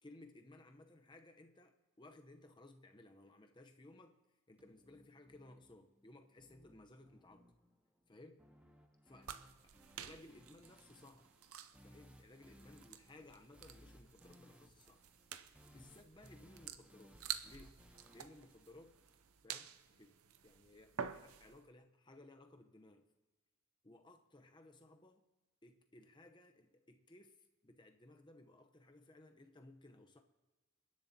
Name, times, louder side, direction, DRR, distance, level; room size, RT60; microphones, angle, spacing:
voice 1, 0.0-4.2 4.5-7.4 8.1-8.4 9.0-9.3 10.0-11.3 11.8-15.0 15.6-17.2 17.4-17.8 18.1-19.0 19.4-20.1 20.4-23.1 23.8-25.2 25.6-27.4 27.6-30.2, left 2 dB, 20° left, 5 dB, 0.8 m, -60 dB
sound 1, 4.6-19.6, equal, 5° right, 0.8 m, -64 dB
sound 2, 9.2-21.6, right 8 dB, 80° right, 0.7 m, -50 dB
27.0 x 10.5 x 2.8 m, 1.2 s
head